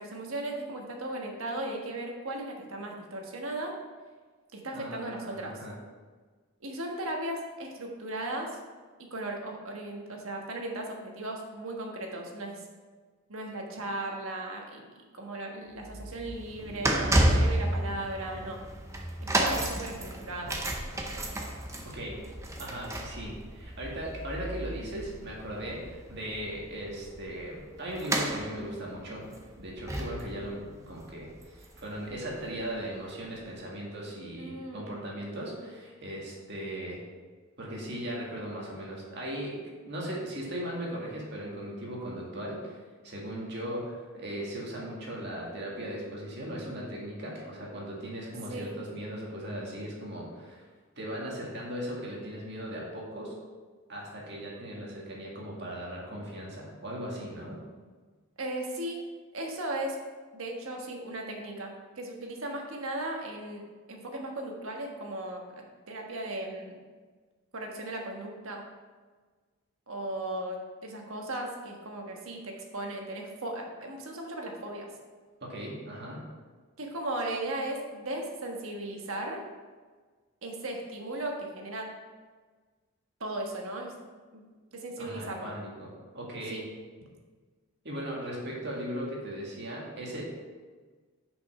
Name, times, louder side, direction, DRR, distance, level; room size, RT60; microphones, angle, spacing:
voice 1, 0.0-3.7 4.5-5.7 6.6-8.6 9.1-12.6 13.3-14.8 15.1-18.6 19.4-20.6 34.4-34.9 48.5-48.8 58.4-59.0 59.3-60.0 60.3-63.6 63.9-66.8 67.5-68.6 69.9-74.9 76.8-79.4 80.4-81.9 83.2-83.9 84.3-84.4 84.7-85.5 86.5-86.7, right 1 dB, 65° right, 1 dB, 1.4 m, -36 dB
voice 2, 4.7-5.7 21.9-22.2 22.6-29.2 29.6-30.6 30.9-37.0 37.6-39.6 39.8-42.8 43.0-50.6 51.0-53.3 53.9-57.6 75.4-76.2 85.0-85.9 86.1-86.6 87.8-90.2, equal, 50° right, -3 dB, 1.9 m, -38 dB
sound 1, 15.8-32.1 32.4-32.6 33.4-33.5, right 1 dB, 15° right, 0.7 m, -32 dB
6.8 x 5.3 x 5.4 m, 1.4 s
head